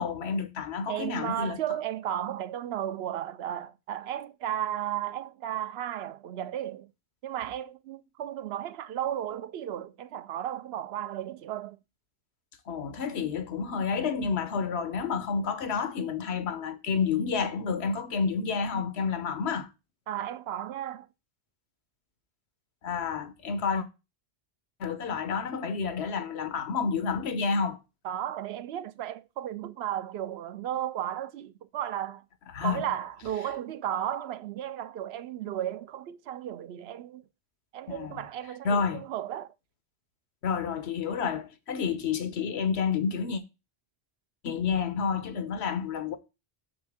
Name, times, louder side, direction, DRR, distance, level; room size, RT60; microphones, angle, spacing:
voice 1, 0.0-1.6 12.7-19.7 22.8-23.9 24.8-27.8 32.5-32.8 37.9-38.2 38.6-39.0 40.4-43.4 44.4-46.2, left 5 dB, 85° left, 1.1 m, -29 dB
voice 2, 0.9-6.9 7.2-11.8 20.1-21.1 28.0-32.2 32.6-37.2 37.7-39.5, right 11 dB, 80° right, 0.8 m, -34 dB
6.9 x 6.6 x 3.5 m
omnidirectional pair, 1.1 m